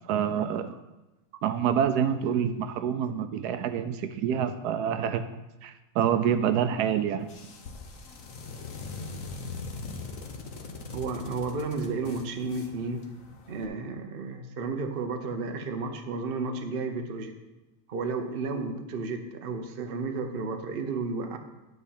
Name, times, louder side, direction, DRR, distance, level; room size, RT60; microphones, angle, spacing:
voice 1, 0.0-0.7 1.4-5.2 5.6-7.3, right 8 dB, 80° right, 10 dB, 1.1 m, -27 dB
sound 1, 7.2-13.6, left 4 dB, 60° left, 1.3 m, -41 dB
voice 2, 10.9-13.0 13.5-17.3 17.9-21.4, right 4 dB, 45° right, 5 dB, 0.9 m, -32 dB
10.0 x 4.3 x 7.2 m, 1.0 s
omnidirectional pair, 1.7 m